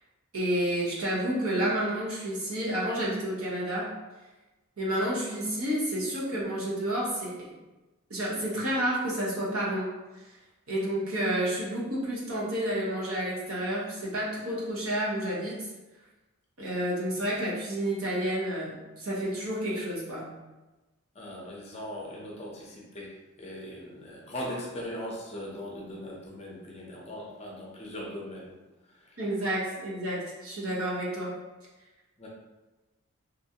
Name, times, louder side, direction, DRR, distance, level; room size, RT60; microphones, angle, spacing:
voice 1, 0.3-3.9 4.8-7.5 8.1-9.9 10.1-10.3 10.7-15.7 16.6-20.3 29.2-31.3, right 1 dB, 75° right, -6 dB, 1.0 m, -30 dB
voice 2, 21.1-28.5 28.9-29.2 32.2-32.3, equal, 30° left, -3 dB, 0.6 m, -40 dB
3.0 x 2.6 x 2.8 m, 1.1 s
head